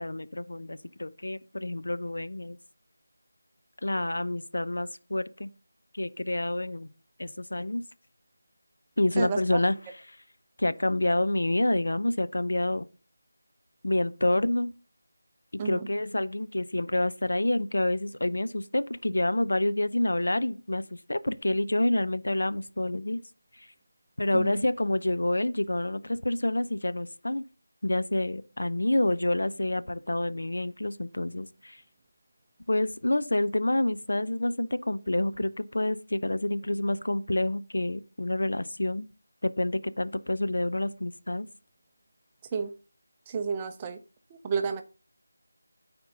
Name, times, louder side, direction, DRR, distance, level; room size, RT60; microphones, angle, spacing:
voice 1, 0.0-2.6 3.8-5.5 5.9-6.9 7.2-7.8 9.0-9.7 10.6-12.8 13.8-14.7 15.6-23.2 23.6-23.7 24.2-27.4 27.8-31.8 32.7-39.1 39.4-41.5, left 1 dB, 75° left, 0.6 m, -28 dB
voice 2, 9.2-9.6 15.6-15.9 24.3-24.6 42.5-42.7 43.3-44.0 44.4-44.8, right 5 dB, 15° right, 0.5 m, -31 dB
12.5 x 4.4 x 2.7 m
figure-of-eight pair, 170°, 0 cm